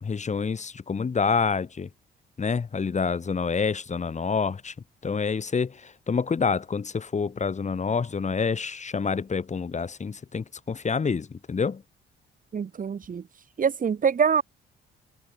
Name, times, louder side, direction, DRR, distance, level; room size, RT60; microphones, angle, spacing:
voice 1, 0.0-1.9 2.4-4.7 5.0-11.8, left 5 dB, 35° left, 3.8 m, -27 dB
voice 2, 12.5-13.2 13.6-14.4, right 7 dB, 45° right, 2.2 m, -24 dB
cardioid pair, 90°, 20 cm